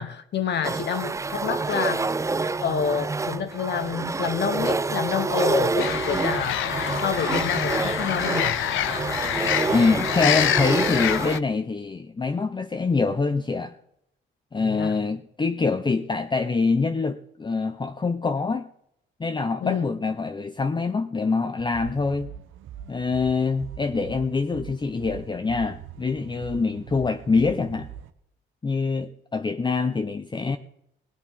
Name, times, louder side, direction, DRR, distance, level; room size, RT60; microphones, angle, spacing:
voice 1, 0.0-2.1 2.6-6.7 7.0-8.6 14.6-15.0 19.6-19.9, left 7 dB, 60° left, 1.1 m, -28 dB
sound 1, 0.6-11.4, right 3 dB, 15° right, 0.5 m, -27 dB
sound 2, 5.8-11.4, left 12 dB, 80° left, 0.7 m, -27 dB
voice 2, 9.7-13.7 14.5-18.7 19.2-22.3 22.9-27.9 28.6-30.6, left 4 dB, 25° left, 0.8 m, -25 dB
sound 3, 21.6-28.1, right 10 dB, 80° right, 1.0 m, -42 dB
18.5 x 9.3 x 5.5 m
cardioid pair, 90°, 20 cm